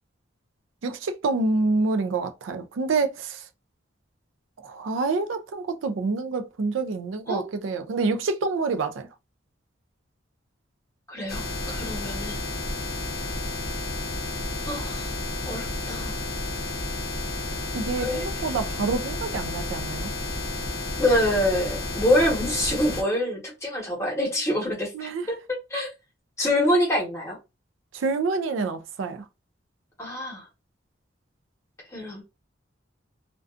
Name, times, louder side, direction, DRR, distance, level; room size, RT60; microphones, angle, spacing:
voice 1, 0.8-3.4 4.6-9.1 17.7-20.1 24.9-25.3 27.9-29.2, right 3 dB, 80° right, 0.4 m, -27 dB
voice 2, 11.1-12.4 14.6-15.1 15.4-16.2 17.8-18.2 21.0-25.4 25.7-25.9 26.4-27.4 30.0-30.5 31.9-32.2, left 1 dB, 15° left, 1.0 m, -26 dB
sound 1, 11.3-23.0, left 2 dB, 50° left, 0.7 m, -31 dB
2.4 x 2.2 x 2.4 m
head